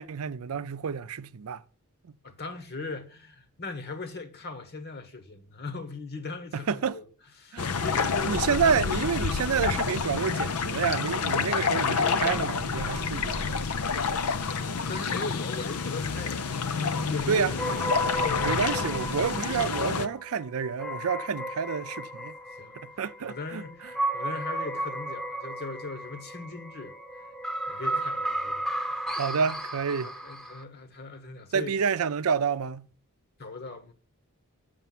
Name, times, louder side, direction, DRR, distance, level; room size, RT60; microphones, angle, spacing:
voice 1, 0.0-1.6 6.5-7.0 7.5-7.7 8.2-13.6 17.3-17.5 18.4-22.3 22.8-23.6 29.2-30.1 31.5-32.8, right 6 dB, 70° right, 0.5 m, -29 dB
voice 2, 2.2-7.0 7.4-9.4 14.9-16.4 16.8-18.7 19.1-19.2 22.6-22.8 23.2-26.9 27.7-29.6 30.0-31.8 33.4-33.9, left 3 dB, 50° left, 1.3 m, -39 dB
sound 1, 7.6-20.1, left 5 dB, 85° left, 0.6 m, -28 dB
sound 2, 17.6-30.6, right 1 dB, ahead, 0.9 m, -34 dB
6.8 x 6.8 x 7.4 m
head